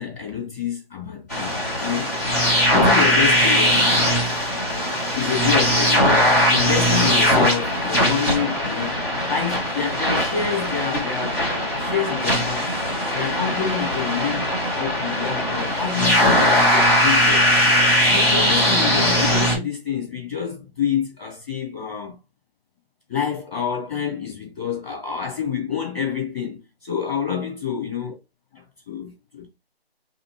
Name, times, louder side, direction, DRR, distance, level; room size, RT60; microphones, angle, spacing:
voice 1, 0.0-2.1 2.7-4.0 5.1-6.2 6.5-8.9 9.2-12.7 13.1-14.5 14.8-17.5 18.1-22.2 23.1-28.1 28.5-29.5, left 7 dB, 5° right, 1.2 m, -27 dB
sound 1, 1.3-19.5, equal, 15° left, 1.1 m, -20 dB
4.3 x 2.8 x 3.0 m
figure-of-eight pair, 180°, 31 cm